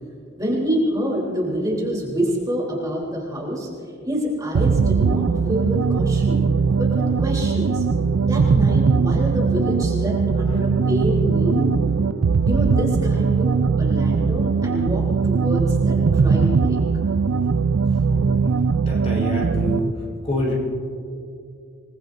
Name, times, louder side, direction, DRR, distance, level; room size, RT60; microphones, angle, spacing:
voice 1, 0.4-3.7 4.1-6.4 6.8-7.8 8.3-11.7 12.4-13.5 13.8-16.8, equal, 15° right, -4 dB, 3.3 m, -26 dB
sound 1, 4.5-19.9, right 5 dB, 85° right, 0.5 m, -20 dB
voice 2, 18.1-19.9 20.2-20.5, equal, 30° left, -2 dB, 3.9 m, -27 dB
27.5 x 20.0 x 2.6 m, 2.4 s
head